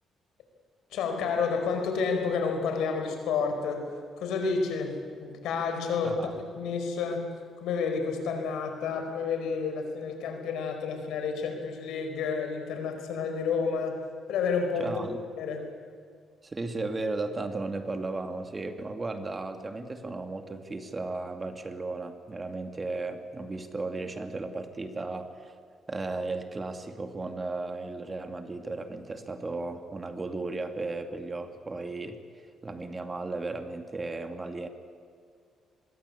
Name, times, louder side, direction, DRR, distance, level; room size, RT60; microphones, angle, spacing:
voice 1, 0.9-3.9 4.2-14.0 14.3-15.0 15.4-15.6, left 5 dB, 85° left, 5 dB, 4.8 m, -30 dB
voice 2, 14.8-15.2 16.4-25.5 25.9-32.2 32.6-34.7, right 3 dB, 25° right, 7 dB, 2.4 m, -35 dB
24.5 x 21.5 x 8.5 m, 2.3 s
cardioid pair, 90°, 0 cm